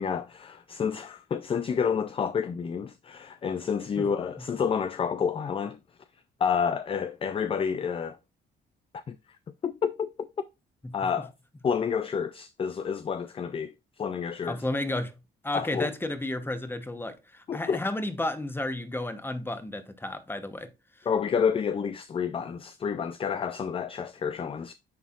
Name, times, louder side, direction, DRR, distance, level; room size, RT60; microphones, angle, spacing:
voice 1, 0.0-5.8 6.4-8.2 8.9-9.2 9.6-10.3 10.9-11.3 11.6-14.6 15.5-15.9 17.5-17.8 21.1-24.7, left 6 dB, 30° left, 0.4 m, -29 dB
voice 2, 14.5-15.2 15.4-20.7, left 1 dB, 10° left, 0.9 m, -32 dB
9.3 x 4.1 x 2.4 m
cardioid pair, 90°, 20 cm